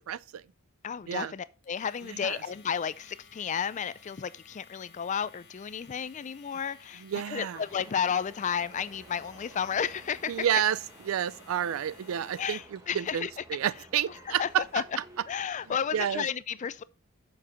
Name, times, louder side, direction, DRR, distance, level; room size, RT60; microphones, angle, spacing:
voice 1, 0.1-0.4 1.1-1.3 2.0-2.4 7.0-7.6 10.3-14.8 15.7-16.2, right 10 dB, 80° right, 0.4 m, -30 dB
voice 2, 0.8-10.6 12.4-13.3 14.4-14.8 15.3-16.8, left 7 dB, 35° left, 0.4 m, -32 dB
Domestic sounds home sounds, 1.6-12.8, left 6 dB, 55° left, 1.5 m, -57 dB
sound 1, 7.6-16.3, right 1 dB, 15° right, 1.5 m, -53 dB
7.2 x 5.0 x 4.9 m
head